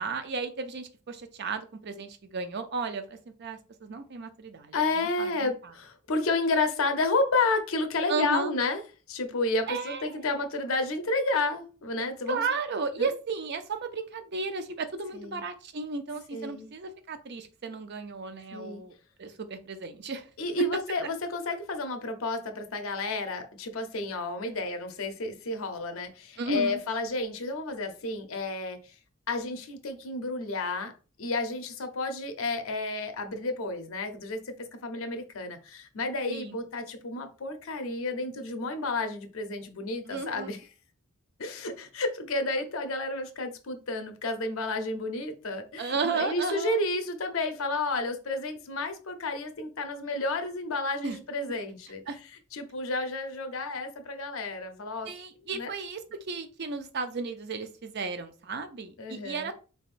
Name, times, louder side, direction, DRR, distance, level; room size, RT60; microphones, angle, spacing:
voice 1, 0.0-5.5 8.1-8.5 9.7-10.2 12.3-18.9 19.2-20.3 26.4-26.8 36.3-36.6 40.1-40.5 45.8-46.8 51.0-51.2 52.1-52.2 55.0-59.5, right 4 dB, 55° right, 0.5 m, -34 dB
voice 2, 4.7-8.8 9.1-12.4 13.0-13.1 15.1-15.4 16.3-16.7 18.5-18.8 20.4-28.9 29.3-30.9 31.2-40.6 41.4-52.0 52.5-55.1 55.5-55.7 59.0-59.5, left 2 dB, 75° left, 0.7 m, -31 dB
4.0 x 3.5 x 2.5 m
head